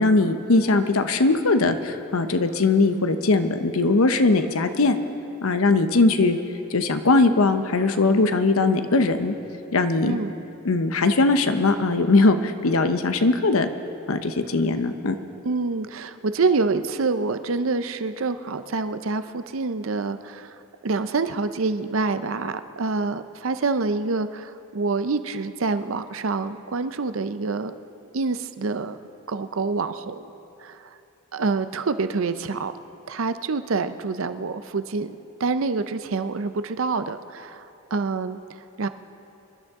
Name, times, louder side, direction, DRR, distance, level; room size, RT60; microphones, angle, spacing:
voice 1, 0.0-5.0 5.4-6.4 6.7-9.3 9.7-10.2 10.6-13.7 14.1-15.1, left 3 dB, 80° left, 9 dB, 0.8 m, -20 dB
voice 2, 15.4-20.5 20.8-27.7 28.1-29.0 29.3-30.3 30.6-30.9 31.3-32.7 33.1-37.6 37.9-38.4 38.8-38.9, right 4 dB, 65° right, 11 dB, 0.6 m, -26 dB
25.5 x 11.5 x 3.7 m, 2.9 s
head